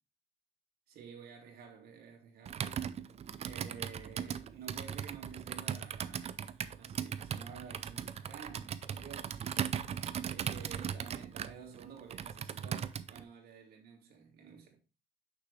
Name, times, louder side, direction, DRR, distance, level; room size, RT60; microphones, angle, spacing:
voice 1, 0.9-2.6 3.4-6.4 6.8-9.4 10.2-14.8, right 6 dB, 65° right, 2.3 m, -51 dB
Computer keyboard, 2.5-13.2, right 8 dB, 40° right, 0.5 m, -38 dB
6.2 x 6.0 x 3.1 m
cardioid pair, 110°, 17 cm